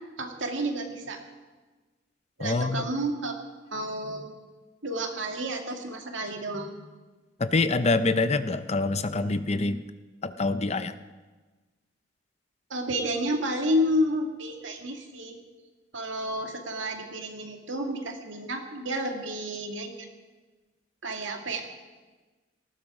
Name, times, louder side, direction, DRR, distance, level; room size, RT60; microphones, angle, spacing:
voice 1, 0.2-1.2 2.4-3.3 3.7-4.3 4.8-6.8 12.7-15.4 15.9-20.1 21.0-21.6, equal, 90° right, 3 dB, 2.2 m, -30 dB
voice 2, 2.4-2.9 7.4-9.8 10.2-10.9, left 3 dB, 35° left, 11 dB, 0.7 m, -25 dB
18.5 x 15.5 x 4.9 m, 1.3 s
head